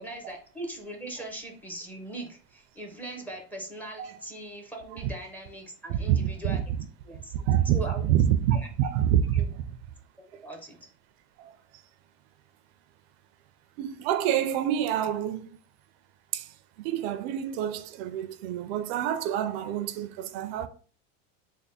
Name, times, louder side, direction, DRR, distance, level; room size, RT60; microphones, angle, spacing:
voice 1, 0.0-6.6 7.0-7.3 7.7-8.0 8.5-8.7 9.3-9.5 10.4-10.9, right 2 dB, 5° left, 0.6 m, -40 dB
voice 2, 5.9-6.6 7.3-9.6 11.4-11.5 13.8-15.5 16.3-16.5 16.8-20.7, right 10 dB, 75° right, 0.5 m, -27 dB
3.4 x 2.1 x 3.9 m
cardioid pair, 150°, 32 cm